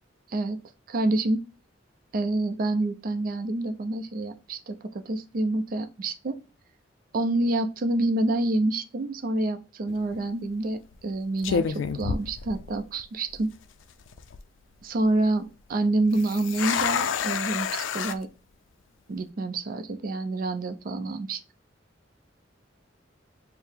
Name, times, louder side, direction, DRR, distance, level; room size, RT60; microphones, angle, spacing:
voice 1, 0.9-1.4 2.1-6.4 7.1-13.5 14.8-18.3 19.1-21.4, right 2 dB, 50° right, 0.4 m, -27 dB
sound 1, 9.9-10.2 10.9-11.1 11.4-13.0 13.3-13.4 14.0-14.4 16.1-18.2, left 6 dB, 85° left, 0.4 m, -29 dB
4.5 x 2.0 x 3.4 m
head